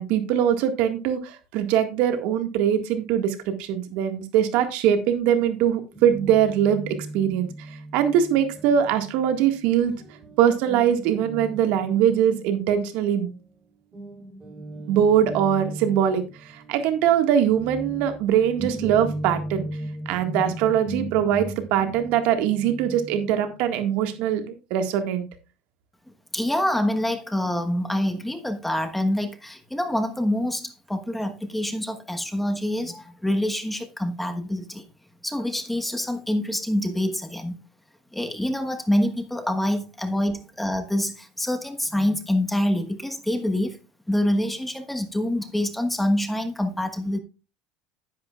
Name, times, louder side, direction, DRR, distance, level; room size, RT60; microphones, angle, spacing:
voice 1, 0.0-7.5 7.9-9.9 10.4-13.3 14.9-16.2 16.7-19.7 20.1-25.3, right 9 dB, 70° right, 1.7 m, -22 dB
Guitar, 5.9-13.6 13.9-24.4, right 1 dB, 15° right, 3.5 m, -38 dB
voice 2, 26.3-34.9 35.2-37.6 38.1-43.8 44.1-47.2, left 1 dB, 5° left, 1.2 m, -26 dB
10.5 x 10.5 x 2.4 m
supercardioid pair, 115°, 3 cm